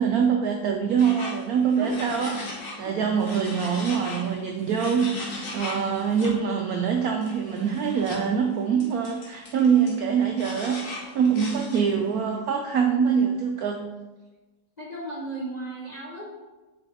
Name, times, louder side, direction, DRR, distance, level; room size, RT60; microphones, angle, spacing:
voice 1, 0.0-13.9, right 7 dB, 75° right, 3 dB, 0.8 m, -24 dB
sound 1, 1.0-2.9 3.2-6.3 7.2-8.3 8.8-12.1, left 2 dB, 55° left, 1.7 m, -38 dB
voice 2, 14.8-16.3, right 2 dB, 30° left, -4 dB, 0.9 m, -35 dB
5.6 x 4.4 x 4.0 m, 1.2 s
omnidirectional pair, 2.0 m